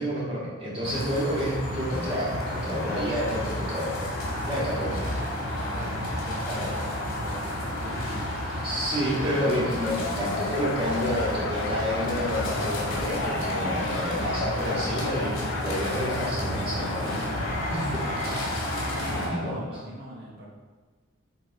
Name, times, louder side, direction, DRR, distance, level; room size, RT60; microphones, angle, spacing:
voice 1, 0.0-4.0 4.5-4.9 6.5-6.8 8.6-17.2 17.5-18.5 19.1-19.6, equal, 25° right, -9 dB, 2.2 m, -30 dB
sound 1, 0.8-19.3, left 1 dB, 80° left, 2.2 m, -31 dB
voice 2, 4.3-8.1 17.7-18.6 18.9-20.5, right 1 dB, 50° right, -5 dB, 1.8 m, -41 dB
sound 2, 9.8-17.6 17.9-18.1, left 4 dB, 60° left, 0.4 m, -36 dB
7.4 x 4.1 x 4.8 m, 1.3 s
head